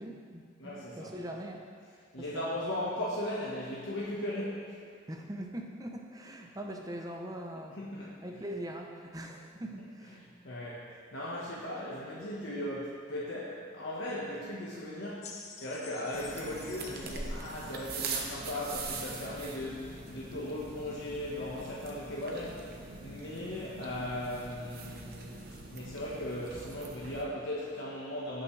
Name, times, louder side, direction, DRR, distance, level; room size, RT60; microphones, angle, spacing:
voice 1, 0.0-1.6 2.3-2.6 5.1-7.8 8.2-10.2, right 1 dB, 20° right, 2 dB, 0.6 m, -42 dB
voice 2, 0.6-1.1 2.1-4.8 7.8-8.2 10.4-22.7 23.0-25.4 25.6-28.4, left 1 dB, 75° left, -7 dB, 1.4 m, -37 dB
sound 1, 15.2-18.5 19.4-19.5, left 5 dB, 35° left, 0.7 m, -50 dB
sound 2, 16.1-27.2, right 3 dB, 50° right, 1.0 m, -42 dB
17.0 x 6.3 x 3.3 m, 2.1 s
head